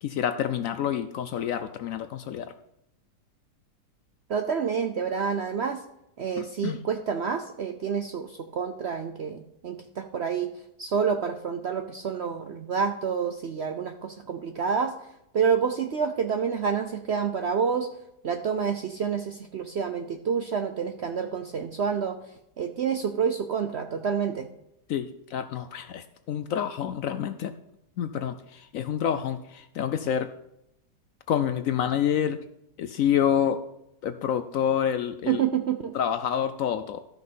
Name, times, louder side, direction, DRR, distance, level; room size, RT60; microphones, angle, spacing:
voice 1, 0.0-2.5 6.4-6.8 24.9-27.5 28.0-30.3 31.3-32.4 32.8-33.6 34.0-35.4 35.9-37.0, left 9 dB, 70° left, 10 dB, 0.8 m, -28 dB
voice 2, 4.3-5.8 6.2-10.5 10.8-14.9 15.3-17.9 18.2-22.2 22.6-24.5 35.3-35.9, right 6 dB, 65° right, 7 dB, 0.7 m, -28 dB
13.0 x 5.9 x 5.4 m, 0.80 s
omnidirectional pair, 1.8 m